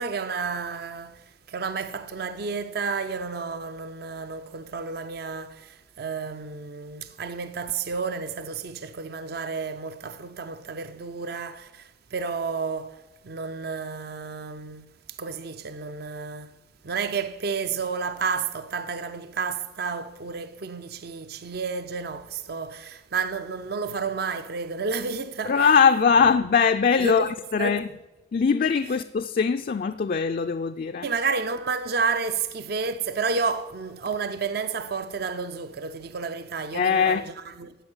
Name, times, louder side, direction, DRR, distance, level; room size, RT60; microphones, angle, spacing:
voice 1, 0.0-16.5 16.8-25.7 27.0-27.3 27.6-27.7 31.0-37.8, right 5 dB, 55° right, 0.6 m, -31 dB
voice 2, 25.5-27.9 28.3-31.1 36.7-37.2, left 6 dB, 50° left, 0.4 m, -21 dB
14.5 x 5.3 x 8.8 m
head